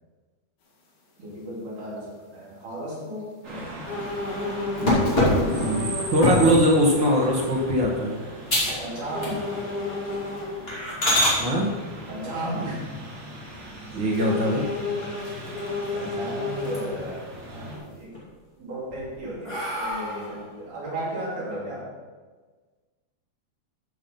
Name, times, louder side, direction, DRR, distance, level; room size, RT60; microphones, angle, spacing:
voice 1, 1.2-3.9 8.8-9.5 12.1-12.9 15.9-18.1 18.6-21.9, right 1 dB, 60° right, -5 dB, 4.1 m, -34 dB
sound 1, 3.4-17.8, right 2 dB, 45° right, 3.0 m, -39 dB
sound 2, 3.9-6.2 6.6-6.7 9.1-10.5 14.1-17.2 17.6-17.7, left 2 dB, 85° left, 3.8 m, -31 dB
voice 2, 4.8-8.2 11.4-11.7 13.9-14.7, equal, 80° right, -2 dB, 1.0 m, -22 dB
sound 3, 4.9-6.6 7.2-7.5 7.9-8.0 8.5-8.8 9.1-9.7 10.0-10.2 10.7-11.4 13.4-14.0 14.5-14.6 15.0-15.1 15.4-16.2 16.5-17.1 17.5-18.2 18.7-20.4, left 1 dB, 15° left, 2.7 m, -25 dB
13.0 x 5.7 x 5.3 m, 1.4 s
omnidirectional pair, 4.1 m